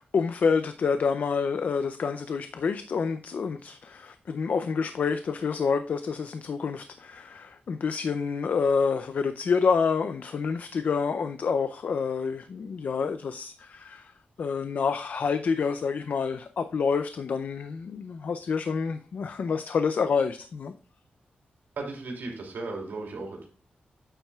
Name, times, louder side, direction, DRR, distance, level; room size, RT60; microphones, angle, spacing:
voice 1, 0.0-14.1 14.4-20.7, left 5 dB, 55° left, 10 dB, 0.4 m, -28 dB
voice 2, 21.8-23.5, right 3 dB, 90° right, 0 dB, 2.7 m, -36 dB
8.7 x 7.2 x 2.3 m, 0.42 s
wide cardioid pair, 155°, 3 cm